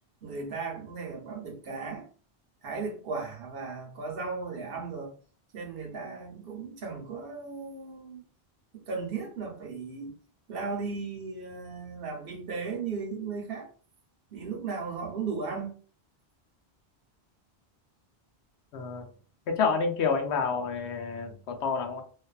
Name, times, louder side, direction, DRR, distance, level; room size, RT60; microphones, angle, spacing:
voice 1, 0.2-2.1 2.6-5.1 5.5-8.2 8.7-10.1 10.5-13.7 14.3-15.8, right 4 dB, 65° right, 0.9 m, -36 dB
voice 2, 18.7-19.1 19.5-22.0, left 5 dB, 90° left, 0.9 m, -28 dB
2.5 x 2.3 x 2.3 m
omnidirectional pair, 1.1 m